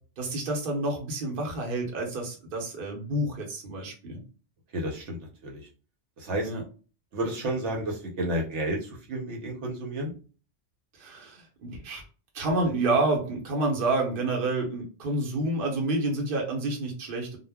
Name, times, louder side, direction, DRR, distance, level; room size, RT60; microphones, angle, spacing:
voice 1, 0.2-4.2 6.4-6.6 10.9-12.0 12.3-17.4, right 2 dB, 50° right, 1 dB, 0.9 m, -29 dB
voice 2, 4.7-5.7 6.2-6.5 7.1-10.1, right 1 dB, 75° right, 0 dB, 1.0 m, -31 dB
2.2 x 2.0 x 3.3 m, 0.37 s
omnidirectional pair, 1.2 m